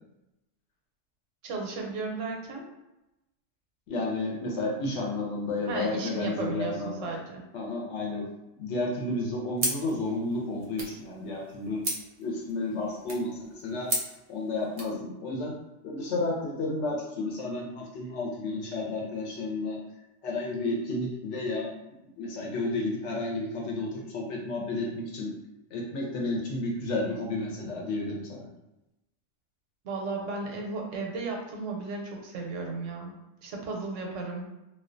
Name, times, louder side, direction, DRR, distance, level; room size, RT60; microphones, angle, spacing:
voice 1, 1.4-2.7 5.7-7.4 29.8-33.1 33.4-34.5, right 3 dB, 85° right, 1 dB, 0.9 m, -34 dB
voice 2, 3.9-7.1 7.5-8.3 8.6-11.8 12.2-13.9 14.3-15.5 15.8-19.8 20.2-21.7 22.2-25.3 25.7-28.5, left 2 dB, 75° left, -2 dB, 0.9 m, -32 dB
sound 1, 9.6-15.0, right 1 dB, 45° right, 0.4 m, -36 dB
2.4 x 2.2 x 2.4 m, 0.95 s
omnidirectional pair, 1.3 m